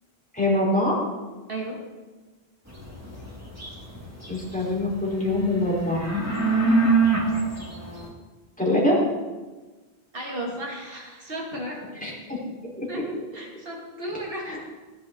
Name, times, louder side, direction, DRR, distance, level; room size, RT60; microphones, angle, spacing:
voice 1, 0.3-1.0 4.3-6.1 8.6-9.0 12.0-12.1 12.8-12.9 14.5-14.6, left 1 dB, 5° left, -5 dB, 4.3 m, -24 dB
voice 2, 1.5-1.8 10.1-11.8 12.9-13.0 13.3-14.6, right 1 dB, 60° right, -2 dB, 2.7 m, -34 dB
sound 1, 2.7-4.8 5.1-8.1, right 3 dB, 15° right, 2.6 m, -24 dB
19.0 x 10.5 x 3.9 m, 1.2 s
omnidirectional pair, 1.1 m